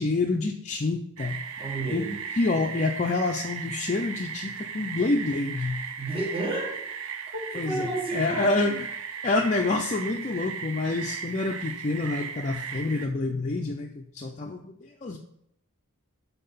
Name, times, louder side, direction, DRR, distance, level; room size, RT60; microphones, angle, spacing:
voice 1, 0.0-1.4 1.9-2.1 2.3-5.8 7.5-8.9 9.2-15.2, left 3 dB, 35° left, 1 dB, 0.4 m, -27 dB
sound 1, 1.2-13.1, right 6 dB, 65° right, 0.5 m, -37 dB
voice 2, 1.6-2.2 6.0-6.8 7.5-8.8, right 2 dB, 25° right, -2 dB, 1.5 m, -31 dB
5.7 x 4.1 x 5.5 m, 0.75 s
head